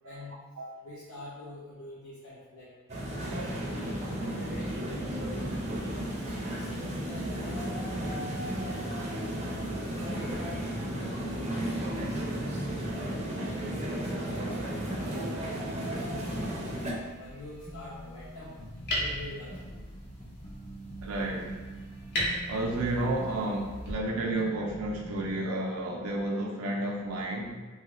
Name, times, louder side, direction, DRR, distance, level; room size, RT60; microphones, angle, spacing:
voice 1, 0.0-0.4 0.8-2.7 3.1-5.6 6.1-9.1 9.7-11.7 12.2-16.8 17.2-18.6 18.9-19.9, left 1 dB, 80° left, -7 dB, 0.6 m, -46 dB
sound 1, 2.9-16.9, right 1 dB, 30° right, 0.5 m, -34 dB
sound 2, 14.0-25.4, right 1 dB, 25° left, 0.4 m, -46 dB
sound 3, 15.9-23.9, equal, 50° left, 0.8 m, -39 dB
voice 2, 21.0-21.5 22.5-27.5, right 1 dB, 90° right, 0 dB, 0.5 m, -31 dB
2.9 x 2.4 x 2.9 m, 1.3 s
head